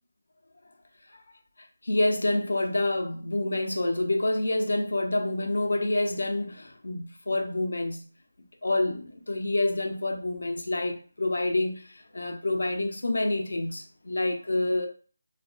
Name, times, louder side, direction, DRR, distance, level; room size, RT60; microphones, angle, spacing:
voice 1, 1.8-8.1 8.6-14.9, left 2 dB, 80° left, 0.7 m, -27 dB
4.2 x 2.5 x 2.4 m
figure-of-eight pair, 160°, 0 cm